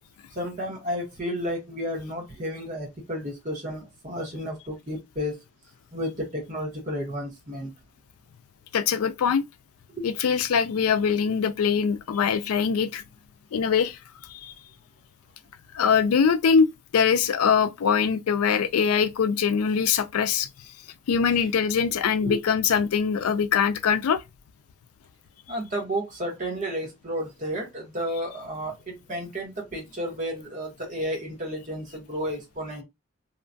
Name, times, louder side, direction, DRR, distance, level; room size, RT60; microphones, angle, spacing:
voice 1, 0.3-5.4 5.9-7.7 10.0-10.1 21.3-21.4 22.2-22.4 25.5-32.8, equal, 35° right, 1.1 m, -32 dB
voice 2, 8.7-9.4 10.0-13.0 13.5-14.0 14.4-14.5 15.7-20.5 21.1-24.2, left 6 dB, 90° left, 0.4 m, -23 dB
2.9 x 2.3 x 2.5 m
head